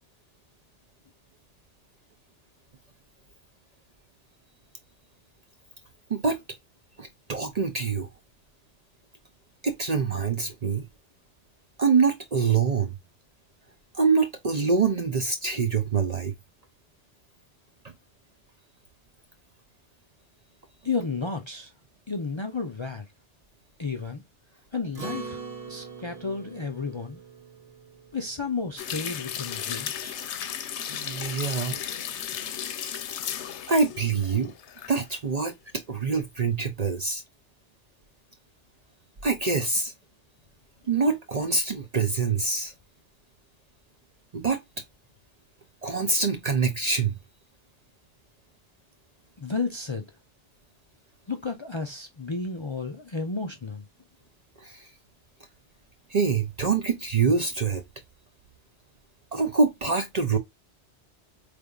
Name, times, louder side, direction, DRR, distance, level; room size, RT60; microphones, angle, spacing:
voice 1, 7.0-8.1 9.6-10.9 11.8-12.9 13.9-16.3 30.9-31.8 33.7-34.5 34.9-35.5 35.9-37.2 39.2-39.9 40.9-42.7 44.3-44.6 45.8-47.2 54.6-54.9 56.1-57.8 59.3-60.4, right 5 dB, 45° right, 0.6 m, -25 dB
voice 2, 20.8-21.7 22.1-23.1 23.8-24.2 24.7-25.4 25.7-27.2 28.1-30.2 49.4-50.0 51.3-53.8, left 4 dB, 35° left, 0.5 m, -32 dB
Acoustic guitar, 24.9-29.6, right 4 dB, 65° right, 1.8 m, -42 dB
sound 1, 28.8-35.0 35.4-35.5, left 9 dB, 80° left, 0.9 m, -35 dB
5.0 x 3.4 x 2.3 m
omnidirectional pair, 1.1 m